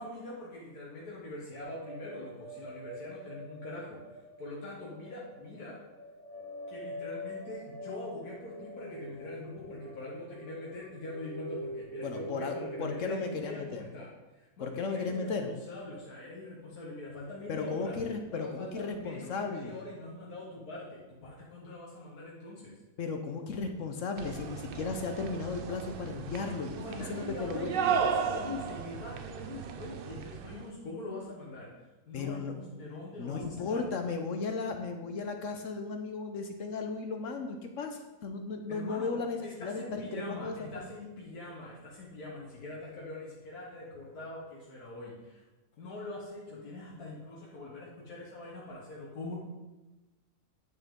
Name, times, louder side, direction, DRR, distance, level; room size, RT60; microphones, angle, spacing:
voice 1, 0.0-5.8 6.7-18.0 18.3-22.7 26.8-31.7 32.1-33.9 38.7-39.1 39.4-45.4 45.8-49.3, left 2 dB, 85° left, -4 dB, 1.8 m, -43 dB
sound 1, 1.6-13.4, equal, 40° right, 2.5 m, -45 dB
voice 2, 12.0-13.8 14.6-15.5 17.5-19.8 23.0-27.7 32.1-32.6 33.2-40.7, left 4 dB, 65° left, 5 dB, 1.0 m, -35 dB
sound 2, 24.2-30.7, right 7 dB, 75° right, 0.5 m, -35 dB
9.5 x 6.5 x 3.7 m, 1.1 s
omnidirectional pair, 1.6 m